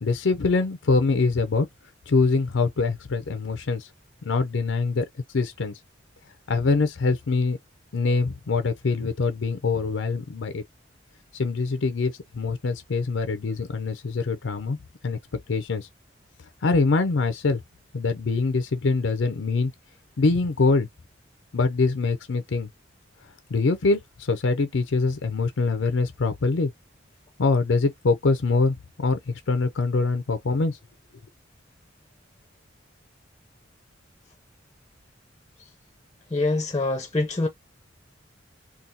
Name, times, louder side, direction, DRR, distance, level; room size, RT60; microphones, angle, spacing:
voice 1, 0.0-1.7 2.1-3.9 4.2-5.1 5.3-5.7 6.5-7.6 7.9-10.6 11.3-14.8 15.0-15.2 15.5-15.9 16.6-17.6 17.9-19.7 20.2-20.9 21.5-22.7 23.5-26.7 27.4-30.8, left 3 dB, 85° left, 0.5 m, -24 dB
voice 2, 36.3-37.5, left 2 dB, 20° left, 0.6 m, -24 dB
3.9 x 2.3 x 2.6 m
head